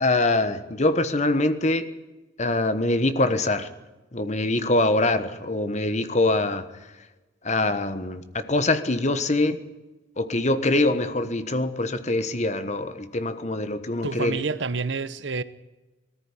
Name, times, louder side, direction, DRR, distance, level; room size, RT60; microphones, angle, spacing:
voice 1, 0.0-1.9 2.4-3.7 4.1-6.7 7.4-9.6 10.2-14.4, left 2 dB, 40° left, 1.3 m, -24 dB
voice 2, 14.0-15.4, right 4 dB, 75° right, 1.0 m, -28 dB
19.5 x 14.0 x 9.8 m
head